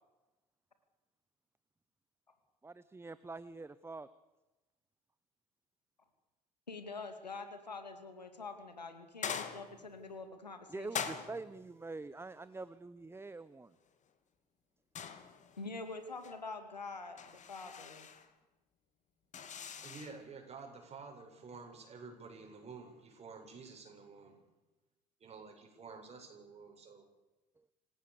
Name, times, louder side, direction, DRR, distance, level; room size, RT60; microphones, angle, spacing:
voice 1, 2.6-4.1 10.7-13.7, right 3 dB, 10° right, 15 dB, 0.9 m, -45 dB
voice 2, 6.7-10.9 15.6-18.1, left 3 dB, 90° left, 8 dB, 2.7 m, -45 dB
sound 1, 9.2-10.0 10.9-11.7 15.0-15.7 16.0-16.4 17.2-18.3 19.3-20.2, left 7 dB, 35° left, 2.7 m, -43 dB
voice 3, 19.8-24.5 25.2-27.1, right 4 dB, 30° right, 3 dB, 7.4 m, -51 dB
27.5 x 17.0 x 6.9 m, 1.1 s
figure-of-eight pair, 65°, 21 cm